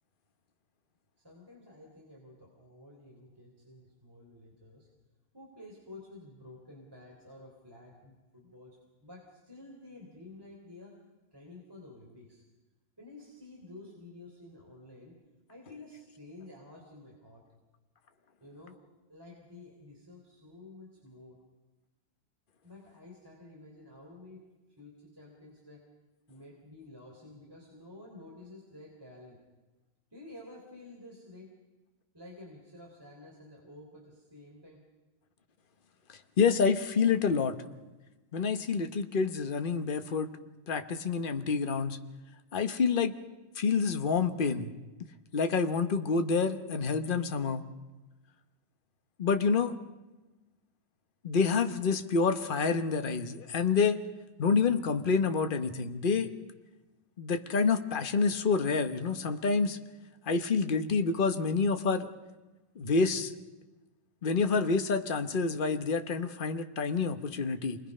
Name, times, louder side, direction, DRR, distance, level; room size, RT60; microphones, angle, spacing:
voice 1, 1.2-4.9 5.3-10.9 11.3-12.4 13.0-15.2 15.5-17.4 18.4-18.8 19.1-21.4 22.6-24.4 24.8-25.8 26.3-29.4 30.1-31.5 32.1-34.8, left 2 dB, 10° right, -2 dB, 3.5 m, -51 dB
voice 2, 36.4-37.6 38.3-40.3 40.7-42.0 42.5-43.1 43.6-44.7 45.3-47.6 49.2-49.8 51.2-54.0 54.4-56.3 57.2-59.8 60.3-62.1 62.8-63.3 64.2-67.8, left 5 dB, 40° left, 8 dB, 0.7 m, -28 dB
28.0 x 21.0 x 5.5 m, 1.1 s
omnidirectional pair, 2.3 m